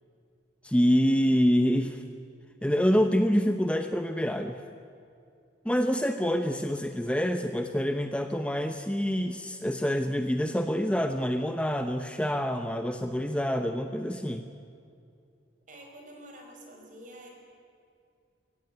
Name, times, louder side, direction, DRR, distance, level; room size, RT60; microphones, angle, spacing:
voice 1, 0.6-2.0 2.6-4.6 5.6-14.5, equal, 5° left, 6 dB, 0.8 m, -26 dB
voice 2, 15.7-17.3, right 1 dB, 45° right, 2 dB, 4.9 m, -48 dB
23.0 x 16.5 x 9.4 m, 2.4 s
head